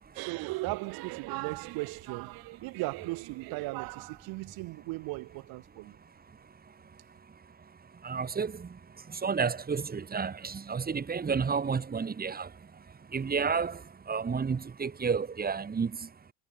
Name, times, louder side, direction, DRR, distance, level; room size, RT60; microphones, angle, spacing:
voice 1, 0.1-6.0, right 23 dB, 60° right, 5.4 m, -36 dB
voice 2, 8.0-8.7 9.1-12.5 13.1-13.8 14.1-15.9, right 5 dB, 25° right, 3.0 m, -31 dB
hypercardioid pair, 85°, 39 cm